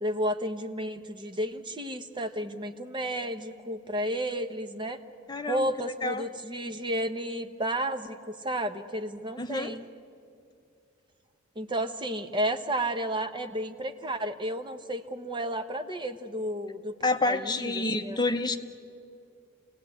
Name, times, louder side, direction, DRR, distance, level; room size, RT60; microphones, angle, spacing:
voice 1, 0.0-5.0 5.5-9.8 11.6-16.9 17.2-18.2, right 1 dB, 25° right, 7 dB, 1.0 m, -32 dB
voice 2, 5.3-6.2 9.4-9.8 17.0-18.6, left 2 dB, 20° left, 6 dB, 0.9 m, -29 dB
27.5 x 18.5 x 8.5 m, 2.5 s
head